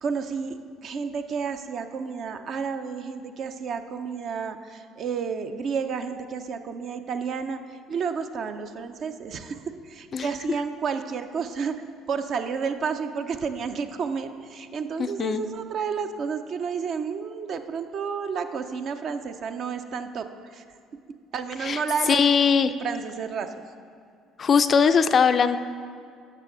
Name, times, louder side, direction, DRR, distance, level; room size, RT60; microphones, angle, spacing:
voice 1, 0.0-7.6 7.9-11.8 12.1-20.6 21.3-22.2 22.8-23.5, right 6 dB, 45° right, 8 dB, 0.6 m, -31 dB
voice 2, 15.0-15.4 21.6-21.8 22.1-22.7 24.4-25.6, left 6 dB, 40° left, 11 dB, 0.4 m, -20 dB
12.5 x 6.6 x 3.8 m, 2.3 s
figure-of-eight pair, 55°, 0 cm